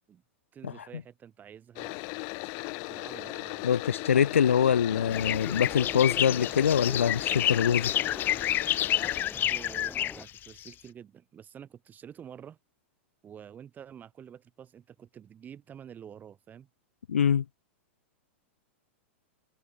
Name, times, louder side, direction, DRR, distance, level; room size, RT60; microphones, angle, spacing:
voice 1, 0.5-2.0 2.9-3.7 9.5-12.6 13.2-16.7, right 8 dB, 25° right, 4.9 m, -48 dB
sound 1, 1.8-9.2, left 38 dB, 50° left, 3.7 m, -38 dB
voice 2, 3.6-8.0 17.1-17.4, left 8 dB, 85° left, 0.6 m, -24 dB
sound 2, 4.9-10.2, left 4 dB, 10° left, 4.8 m, -43 dB
sound 3, 5.1-10.7, left 12 dB, 30° left, 0.6 m, -29 dB
hypercardioid pair, 110°, 7 cm